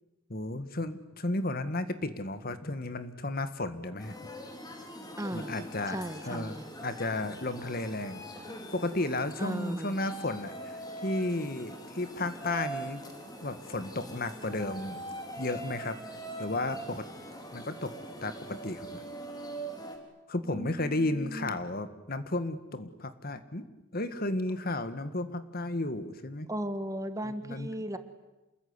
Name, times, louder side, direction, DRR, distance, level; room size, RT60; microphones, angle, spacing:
voice 1, 0.3-4.2 5.3-6.0 6.2-8.2 8.7-13.0 13.4-15.0 15.4-16.0 16.4-17.0 17.5-17.9 18.2-19.0 20.3-23.7 23.9-26.5 27.2-27.7, left 2 dB, 50° left, 11 dB, 1.8 m, -33 dB
sound 1, 4.0-20.0, right 1 dB, 20° left, 3.9 m, -43 dB
voice 2, 5.2-5.5 5.9-6.6 9.4-9.9 20.4-21.6 26.5-28.0, right 1 dB, 15° right, 10 dB, 1.5 m, -36 dB
27.5 x 21.0 x 9.8 m, 1.1 s
head